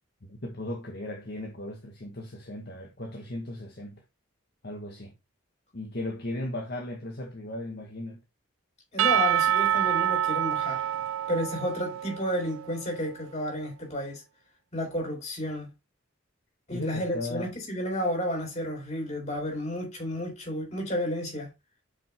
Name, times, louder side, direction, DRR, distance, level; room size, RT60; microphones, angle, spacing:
voice 1, 0.3-4.0 4.6-5.1 5.7-8.2 16.7-17.5, left 1 dB, 50° left, 1.4 m, -37 dB
voice 2, 8.9-10.9 11.3-14.2 14.7-15.7 16.7-21.5, equal, 35° left, 4.1 m, -31 dB
Percussion / Church bell, 9.0-12.8, right 11 dB, 80° right, 0.3 m, -27 dB
6.5 x 5.6 x 3.5 m
head